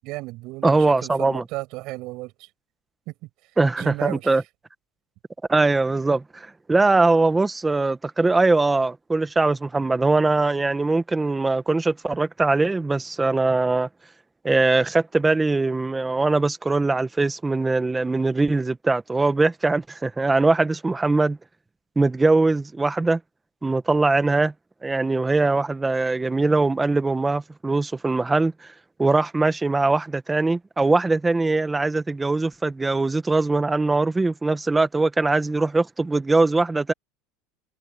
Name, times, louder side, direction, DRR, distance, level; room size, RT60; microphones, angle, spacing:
voice 1, 0.0-2.5 3.1-3.3 3.8-4.4, right 21 dB, 55° right, 6.7 m, -34 dB
voice 2, 0.6-1.4 3.6-4.4 5.5-13.9 14.4-21.4 22.0-23.2 23.6-24.5 24.8-28.5 29.0-36.9, right 3 dB, 10° right, 1.2 m, -21 dB
supercardioid pair, 145°, 0 cm